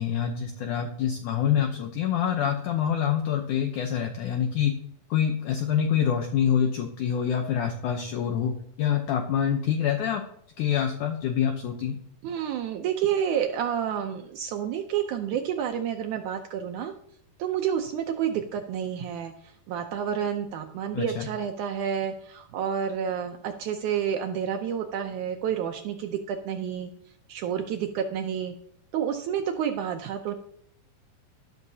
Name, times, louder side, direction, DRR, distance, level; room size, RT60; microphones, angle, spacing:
voice 1, 0.0-4.7 5.1-8.5 8.8-10.2 10.6-12.0 20.9-21.3, left 8 dB, 70° left, 4 dB, 2.0 m, -26 dB
voice 2, 12.2-16.9 17.4-26.9 27.3-28.6 28.9-30.3, right 8 dB, 80° right, 6 dB, 1.7 m, -29 dB
12.5 x 12.0 x 2.8 m, 0.67 s
omnidirectional pair, 4.3 m